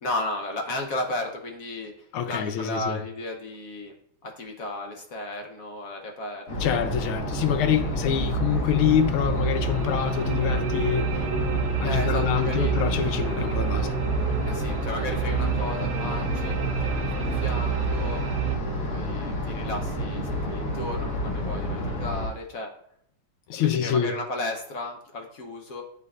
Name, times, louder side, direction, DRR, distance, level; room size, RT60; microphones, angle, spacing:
voice 1, 0.0-3.9 4.2-6.9 11.8-12.7 14.4-18.2 18.9-22.7 23.6-25.8, left 2 dB, 60° left, 0.9 m, -34 dB
voice 2, 2.1-3.0 6.6-11.2 11.8-13.9 23.5-24.1, left 9 dB, 85° left, 1.5 m, -26 dB
sound 1, 6.5-22.3, equal, 45° left, 1.6 m, -30 dB
sound 2, 7.2-18.6, right 8 dB, 75° right, 1.4 m, -30 dB
9.4 x 4.7 x 2.4 m
omnidirectional pair, 2.3 m